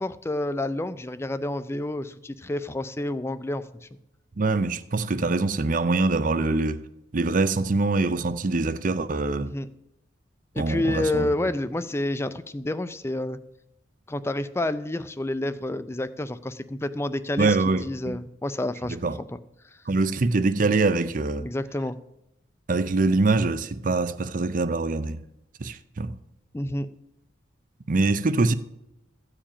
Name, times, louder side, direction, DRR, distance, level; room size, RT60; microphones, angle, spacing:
voice 1, 0.0-3.9 9.4-9.7 10.5-13.4 14.1-19.0 19.3-19.4 21.4-22.0 26.5-26.9, left 1 dB, 15° left, 0.4 m, -29 dB
voice 2, 4.4-6.8 7.1-9.5 10.6-11.3 17.4-18.2 18.9-19.2 19.9-21.5 22.7-25.2 25.6-26.2 27.9-28.5, right 3 dB, 45° right, 0.5 m, -24 dB
14.0 x 4.9 x 8.7 m
head